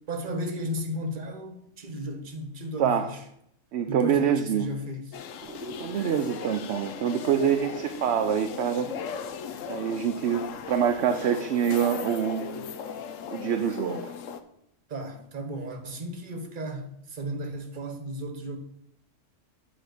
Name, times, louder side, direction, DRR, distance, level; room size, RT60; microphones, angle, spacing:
voice 1, 0.1-3.2 3.9-5.2 14.9-18.6, equal, 40° right, 1.2 m, -34 dB
voice 2, 2.8-3.1 3.7-4.7 5.8-8.9 9.7-12.6 13.3-14.1, right 8 dB, 65° right, 0.8 m, -26 dB
sound 1, 5.1-14.4, left 7 dB, 85° left, 1.0 m, -38 dB
sound 2, 5.4-11.0, right 2 dB, 15° right, 1.0 m, -46 dB
9.1 x 3.8 x 6.6 m
omnidirectional pair, 1.3 m